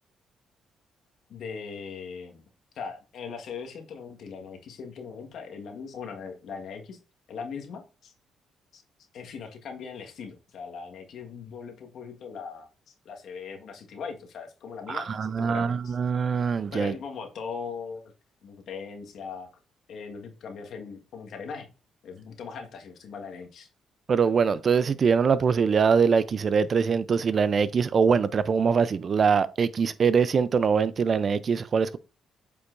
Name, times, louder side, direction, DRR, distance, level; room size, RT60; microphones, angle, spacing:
voice 1, 1.3-2.4 2.7-7.0 7.3-8.1 8.7-8.8 9.1-16.0 16.7-18.0 18.4-19.5 19.9-21.7 22.0-23.7, left 5 dB, 70° left, 1.5 m, -40 dB
voice 2, 14.9-17.0 24.1-32.0, right 6 dB, 45° right, 0.5 m, -23 dB
8.0 x 5.4 x 2.6 m
cardioid pair, 90°, 0 cm